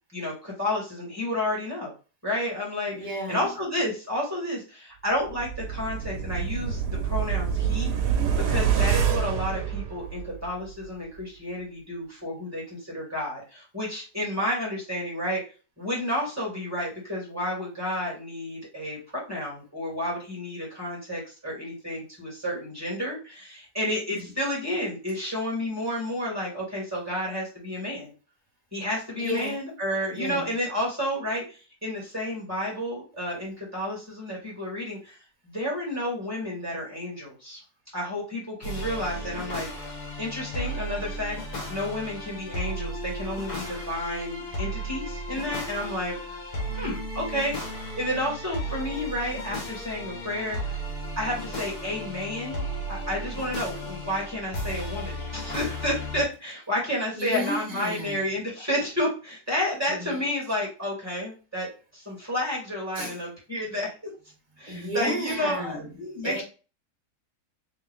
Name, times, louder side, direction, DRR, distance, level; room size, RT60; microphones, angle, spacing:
voice 1, 0.1-1.9 2.2-7.9 8.5-15.4 15.8-28.1 28.7-35.2 35.4-37.6 37.9-39.7 40.2-41.4 41.7-46.2 46.7-47.6 48.0-50.8 51.2-52.6 52.9-61.7 61.9-63.9 64.6-66.4, left 1 dB, 10° right, 2.2 m, -31 dB
voice 2, 2.9-3.5 29.2-29.6 30.1-30.5 57.1-58.2 59.9-60.2 62.9-63.2 64.6-66.0 66.2-66.4, equal, 25° right, 1.5 m, -32 dB
sound 1, 5.2-10.5 10.8-10.9, right 7 dB, 85° right, 1.4 m, -26 dB
sound 2, 38.6-56.2, equal, 65° left, 1.7 m, -34 dB
3.6 x 3.3 x 3.6 m
omnidirectional pair, 1.7 m